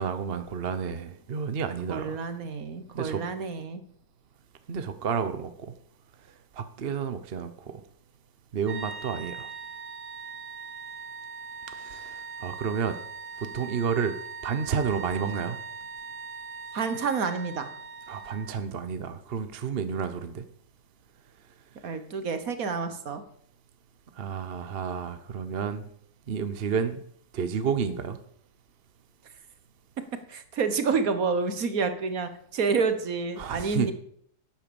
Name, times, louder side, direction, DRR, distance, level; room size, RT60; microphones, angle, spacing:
voice 1, 0.0-2.2 2.9-3.2 4.7-5.5 6.5-7.7 8.5-9.5 11.7-13.0 13.4-14.2 14.4-15.6 18.1-20.4 24.2-25.9 26.3-27.0 27.3-28.2 33.4-33.9, right 6 dB, 45° right, 0.9 m, -30 dB
voice 2, 1.9-3.8 16.7-17.7 21.8-23.2 30.3-33.9, right 5 dB, 60° right, 1.6 m, -29 dB
sound 1, 8.6-18.6, right 5 dB, 75° right, 2.0 m, -41 dB
11.0 x 9.0 x 7.0 m
omnidirectional pair, 1.8 m